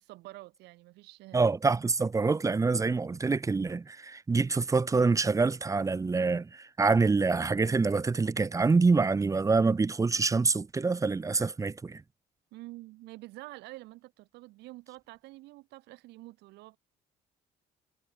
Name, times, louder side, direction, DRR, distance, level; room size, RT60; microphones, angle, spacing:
voice 1, 0.0-1.5 12.5-16.8, right 20 dB, 90° right, 3.7 m, -48 dB
voice 2, 1.3-12.0, right 4 dB, 20° right, 0.9 m, -26 dB
cardioid pair, 110°, 17 cm